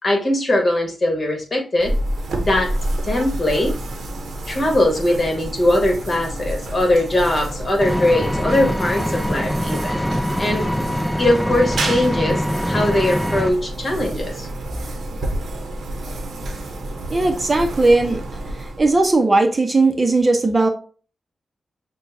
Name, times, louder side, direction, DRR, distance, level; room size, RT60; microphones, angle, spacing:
voice 1, 0.0-1.9 2.4-2.7 3.0-3.8 4.5-10.0 10.4-10.7 11.2-14.5, left 1 dB, 40° left, 2 dB, 1.5 m, -20 dB
sound 1, 1.8-19.2, right 1 dB, 80° right, 0.8 m, -29 dB
Vehicle, 7.8-13.5, equal, 5° left, 0.4 m, -24 dB
voice 2, 17.1-18.2 18.6-20.7, right 2 dB, 35° right, 5 dB, 0.6 m, -17 dB
6.4 x 2.2 x 2.6 m, 0.38 s
cardioid pair, 85°, 0 cm